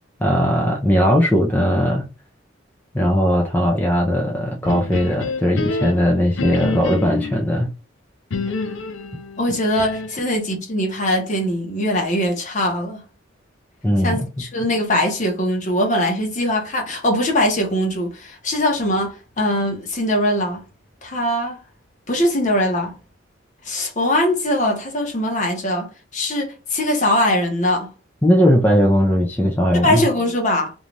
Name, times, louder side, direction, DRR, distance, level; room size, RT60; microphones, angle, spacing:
voice 1, 0.2-2.1 2.9-7.7 13.8-14.1 28.2-30.0, equal, 10° left, 0.4 m, -18 dB
sound 1, 4.6-7.4 8.3-10.3, left 3 dB, 70° left, 0.5 m, -28 dB
voice 2, 9.4-13.0 14.0-20.6 21.0-21.6 22.1-22.9 23.6-27.9 29.8-30.7, left 1 dB, 40° left, 0.9 m, -21 dB
2.6 x 2.3 x 3.1 m
head